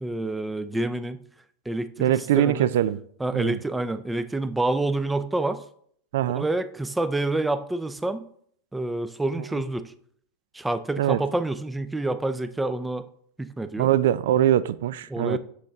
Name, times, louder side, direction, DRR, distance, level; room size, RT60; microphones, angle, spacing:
voice 1, 0.0-1.2 1.7-2.7 3.2-5.6 6.3-8.3 8.7-9.9 10.5-13.0 13.4-13.9 15.1-15.4, right 2 dB, 5° right, 0.4 m, -28 dB
voice 2, 2.0-3.0 3.3-3.6 6.1-6.4 11.0-11.2 13.8-15.4, right 11 dB, 75° right, 0.3 m, -22 dB
6.5 x 5.3 x 3.5 m
supercardioid pair, 135°, 0 cm